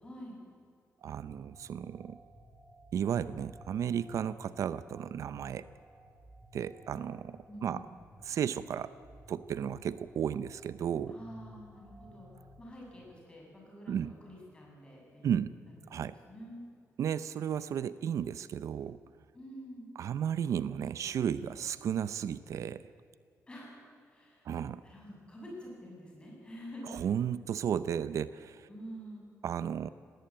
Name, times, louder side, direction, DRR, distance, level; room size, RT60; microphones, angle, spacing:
voice 1, 0.0-0.4 7.5-7.9 11.1-12.3 12.6-15.4 16.3-16.6 19.3-19.9 23.5-23.8 24.1-24.5 24.8-27.0 28.7-29.3, equal, 15° left, -2 dB, 7.2 m, -47 dB
voice 2, 1.0-2.2 2.9-5.7 6.5-7.8 8.2-8.9 9.3-11.2 13.9-14.2 15.2-15.5 15.9-16.2 17.0-19.0 20.0-22.9 24.4-24.8 26.8-28.7 29.4-29.9, right 8 dB, 65° right, 15 dB, 0.5 m, -34 dB
sound 1, 1.2-13.1, equal, 15° right, 2.9 m, -56 dB
19.5 x 18.5 x 8.8 m, 2.3 s
wide cardioid pair, 150°, 6 cm